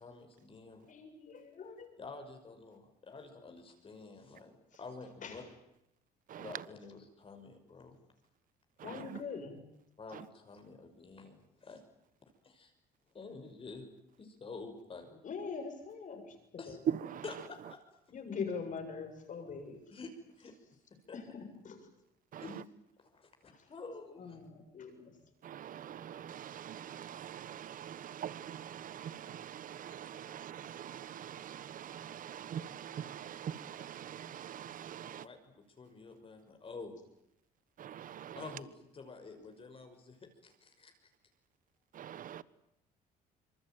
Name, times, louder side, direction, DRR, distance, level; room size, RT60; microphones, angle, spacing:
voice 1, 0.0-0.8 2.0-5.4 6.4-8.0 8.8-9.0 10.0-11.8 12.4-12.7 13.1-13.9 14.2-15.2 16.6-16.8 17.2-17.8 19.9-20.5 21.1-21.2 22.4-22.6 23.0-24.4 35.0-37.0 38.4-40.9, left 3 dB, 35° left, 5.9 m, -49 dB
voice 2, 0.9-2.0 5.2-5.5 8.8-9.6 15.2-16.4 16.7-16.8 18.1-19.8 21.1-21.3 21.6-21.9 23.5-23.6 24.2-25.1, left 5 dB, 50° left, 7.4 m, -42 dB
voice 3, 6.3-6.6 8.8-9.2 10.1-10.3 16.9-17.2 22.3-22.6 25.4-35.3 37.8-38.6 41.9-42.4, right 9 dB, 55° right, 1.4 m, -43 dB
26.0 x 24.0 x 9.3 m
cardioid pair, 110°, 17 cm